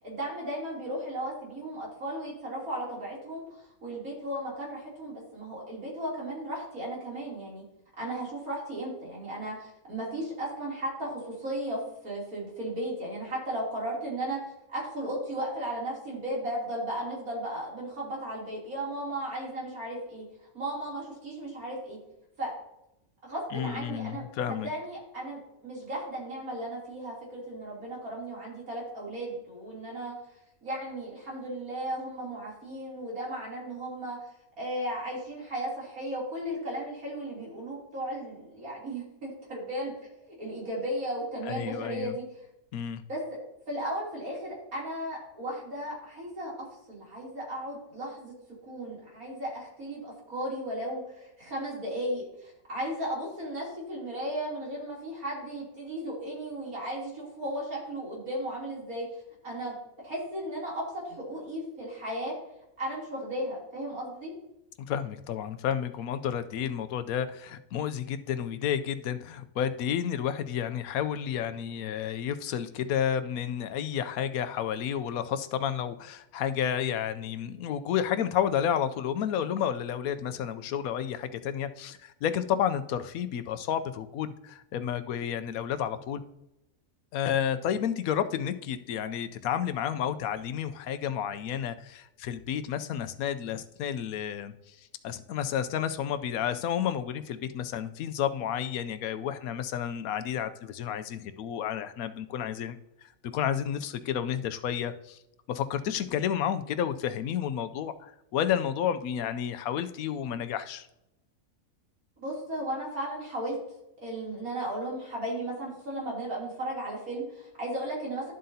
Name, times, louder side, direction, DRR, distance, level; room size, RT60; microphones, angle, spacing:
voice 1, 0.0-7.6 8.0-14.4 14.7-20.2 20.5-22.0 22.4-22.5 23.2-30.1 30.6-34.2 34.6-39.9 40.2-42.2 43.1-43.2 43.7-48.3 48.7-59.1 59.4-59.8 60.0-62.3 62.8-64.3 112.2-113.6 114.0-118.3, right 1 dB, 90° right, -4 dB, 3.5 m, -35 dB
voice 2, 23.5-24.7 41.4-42.1 42.7-43.0 64.9-86.2 87.1-94.8 95.0-102.8 103.3-105.2 105.5-110.9, left 9 dB, 90° left, 11 dB, 1.1 m, -31 dB
11.5 x 7.6 x 2.8 m, 0.87 s
omnidirectional pair, 1.4 m